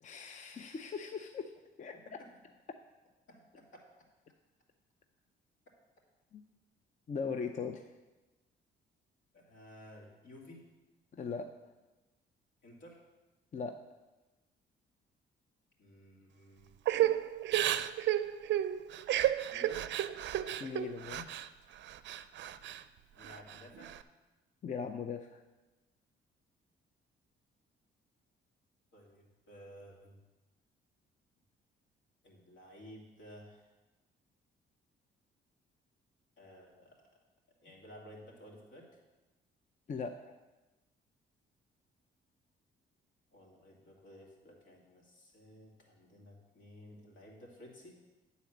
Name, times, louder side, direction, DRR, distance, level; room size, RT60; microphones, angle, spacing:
voice 1, 0.0-1.5 1.8-2.0 6.3-6.4 7.1-7.9 11.1-11.5 13.5-13.8 20.6-21.3 24.6-25.4 39.9-40.3, left 5 dB, 40° left, 7 dB, 0.5 m, -39 dB
voice 2, 2.0-2.5 3.3-3.9 9.3-10.7 12.6-13.0 15.8-16.8 19.5-19.9 23.1-23.9 28.9-30.2 32.2-33.7 36.4-37.0 37.6-38.9 43.3-48.0, equal, 70° left, -1 dB, 2.4 m, -54 dB
Crying sobbing / Breathing, 16.9-21.5 21.8-22.8 23.2-24.0, right 12 dB, 65° right, 0.4 m, -32 dB
10.5 x 4.1 x 7.2 m, 1.1 s
cardioid pair, 90°, 20 cm